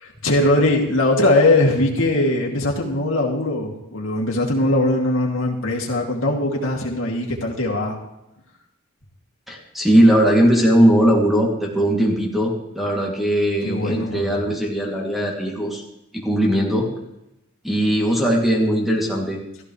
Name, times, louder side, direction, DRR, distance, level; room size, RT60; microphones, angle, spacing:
voice 1, 0.0-8.0 13.6-14.4, left 2 dB, 65° left, -1 dB, 2.7 m, -20 dB
voice 2, 9.5-15.8 16.1-16.9 17.6-19.4, equal, ahead, -2 dB, 2.7 m, -19 dB
15.5 x 14.5 x 3.3 m, 0.87 s
head